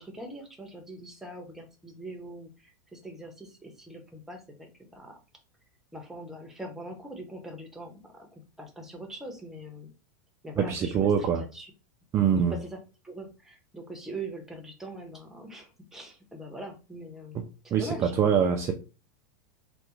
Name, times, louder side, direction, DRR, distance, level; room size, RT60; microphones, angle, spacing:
voice 1, 0.0-5.2 5.9-9.9 10.4-11.7 12.5-18.4, right 1 dB, 5° right, 0.8 m, -42 dB
voice 2, 10.6-11.4 12.1-12.5 17.3-17.4 17.7-18.7, right 7 dB, 25° right, 0.4 m, -24 dB
3.3 x 2.2 x 3.0 m
supercardioid pair, 140°, 11 cm